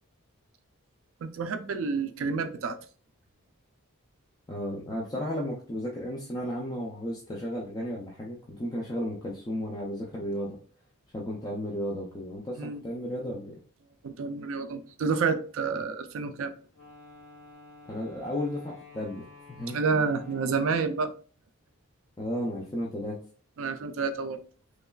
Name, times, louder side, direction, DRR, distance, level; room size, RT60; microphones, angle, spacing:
voice 1, 1.2-2.8 12.6-12.8 14.0-16.5 19.7-21.1 23.6-24.4, right 4 dB, 65° right, 0.3 m, -29 dB
voice 2, 4.5-10.6 11.1-13.6 17.9-19.8 22.2-23.2, equal, 20° left, 0.4 m, -34 dB
Wind instrument woodwind instrument, 16.7-21.1, left 3 dB, 60° left, 1.3 m, -51 dB
3.1 x 2.3 x 2.2 m
head